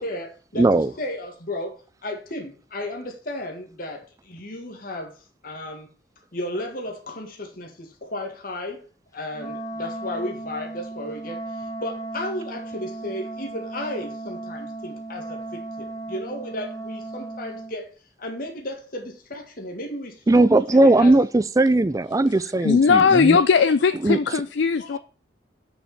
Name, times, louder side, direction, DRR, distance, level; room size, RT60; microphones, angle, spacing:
voice 1, 0.0-5.1 5.4-5.9 6.3-8.8 9.1-17.9 18.2-21.2 24.8-25.0, left 1 dB, 55° left, 1.9 m, -34 dB
voice 2, 0.6-0.9 20.3-23.4 24.0-24.2, right 2 dB, 20° right, 0.4 m, -18 dB
Wind instrument woodwind instrument, 9.3-17.8, right 2 dB, 20° left, 1.0 m, -35 dB
voice 3, 22.6-25.0, left 5 dB, 85° left, 0.4 m, -18 dB
6.9 x 5.1 x 7.1 m
head